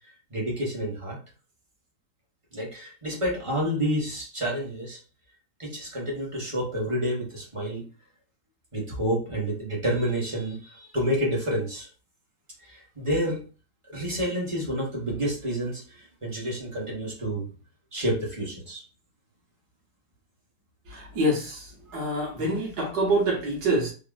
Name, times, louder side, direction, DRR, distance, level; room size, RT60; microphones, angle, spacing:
voice 1, 0.3-1.2 2.5-5.0 5.6-7.9 8.7-11.9 12.6-13.4 13.9-17.5 17.9-18.8, equal, 25° right, -3 dB, 0.7 m, -29 dB
voice 2, 20.9-21.6 21.9-23.9, right 1 dB, 65° right, -2 dB, 1.6 m, -26 dB
3.6 x 2.0 x 2.4 m, 0.35 s
omnidirectional pair, 1.9 m